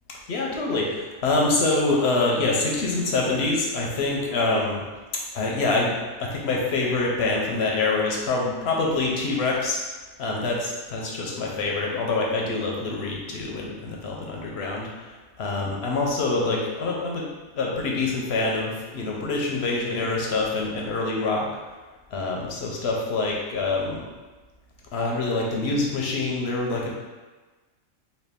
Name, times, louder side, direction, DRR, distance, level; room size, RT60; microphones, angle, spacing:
voice 1, 0.3-4.8 5.3-5.9 6.2-9.8 10.2-17.3 17.5-21.5 22.1-24.0 24.9-26.9, left 3 dB, 60° left, -2 dB, 0.8 m, -25 dB
4.1 x 2.3 x 3.4 m, 1.3 s
omnidirectional pair, 1.4 m